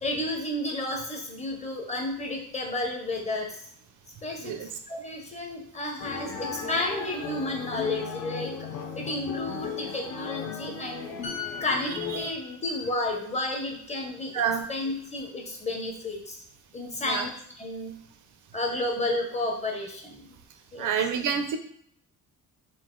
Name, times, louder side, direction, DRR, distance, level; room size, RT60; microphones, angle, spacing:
voice 1, 0.0-3.7 4.2-8.7 8.9-11.1 11.6-14.4 14.7-16.4 16.7-17.9 18.5-20.3 20.7-20.9, left 2 dB, 20° left, 1 dB, 0.6 m, -32 dB
voice 2, 4.4-4.7 12.1-12.3 14.3-14.6 17.1-17.3 20.8-21.6, right 7 dB, 60° right, 7 dB, 0.5 m, -28 dB
sound 1, 6.0-12.3, left 6 dB, 50° left, 0.7 m, -36 dB
sound 2, 11.2-14.8 15.2-15.4, left 6 dB, 80° left, 1.3 m, -43 dB
3.9 x 2.4 x 3.7 m, 0.66 s
cardioid pair, 170°, 35 cm